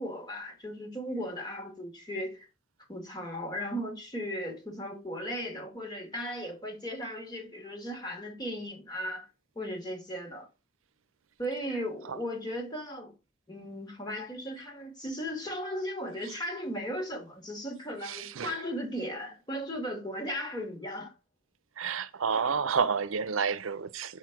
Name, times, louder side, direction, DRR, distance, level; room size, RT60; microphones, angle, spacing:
voice 1, 0.0-2.5 2.9-9.3 9.6-10.5 11.4-13.1 13.5-21.1, equal, 20° left, 2.0 m, -36 dB
voice 2, 18.0-18.5 21.8-24.2, right 6 dB, 85° right, 0.6 m, -30 dB
6.5 x 4.3 x 5.9 m
head